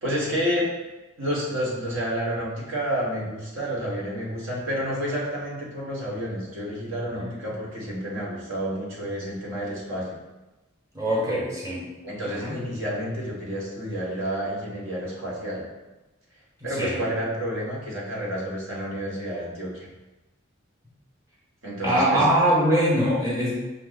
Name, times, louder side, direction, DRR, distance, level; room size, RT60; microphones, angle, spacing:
voice 1, 0.0-0.6 1.2-10.2 12.0-15.6 16.6-19.9 21.6-22.3, equal, 70° right, -4 dB, 1.2 m, -30 dB
voice 2, 10.9-11.9 12.3-12.5 16.8-17.0 21.8-23.5, right 1 dB, 15° right, -6 dB, 1.0 m, -22 dB
5.3 x 2.0 x 3.9 m, 1.1 s
head